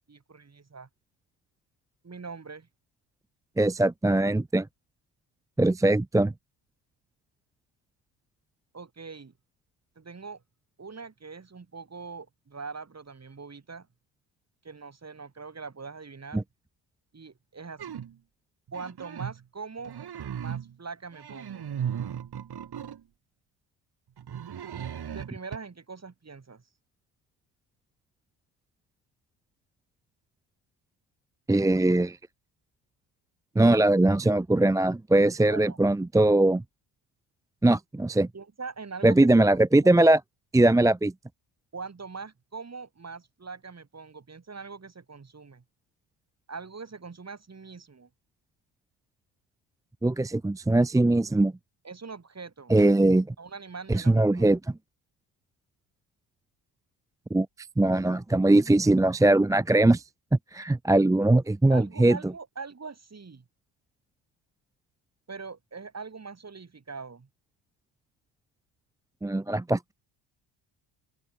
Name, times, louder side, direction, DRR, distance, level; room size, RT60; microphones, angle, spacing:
voice 1, 0.1-0.9 2.0-2.7 8.7-9.3 10.0-10.4 10.8-13.9 14.6-16.4 17.1-18.0 18.7-19.9 20.4-21.7 25.1-26.6 35.5-35.8 38.3-39.3 39.8-40.0 41.7-45.6 46.5-48.1 51.8-52.7 53.4-54.5 61.3-61.4 61.7-63.4 65.3-67.3, right 4 dB, 30° right, 7.5 m, -42 dB
voice 2, 3.6-4.7 5.6-6.3 16.3-16.4 31.5-32.2 33.6-36.6 37.6-38.3 39.0-40.2 40.5-41.1 50.0-51.5 52.7-53.3 53.9-54.6 57.3-57.5 57.8-60.0 60.3-62.2 69.2-69.9, right 2 dB, 5° right, 0.6 m, -21 dB
sound 1, 17.8-18.1 18.7-19.4 19.8-20.8 21.1-23.0 24.2-25.6, right 9 dB, 50° right, 2.6 m, -36 dB
open air
supercardioid pair, 75°, 50 cm